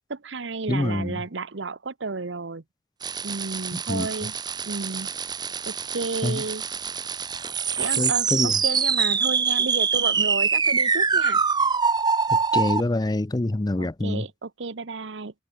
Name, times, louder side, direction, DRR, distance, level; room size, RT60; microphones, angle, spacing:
voice 1, 0.1-2.6 3.2-4.3 4.6-5.1 5.7-6.6 7.8-11.4 13.8-15.3, right 3 dB, 75° right, 1.0 m, -32 dB
voice 2, 0.7-1.2 3.9-4.1 6.2-6.4 8.0-8.5 12.5-14.3, left 1 dB, 20° left, 0.5 m, -25 dB
sound 1, 3.0-12.8, right 5 dB, 20° right, 0.8 m, -24 dB
head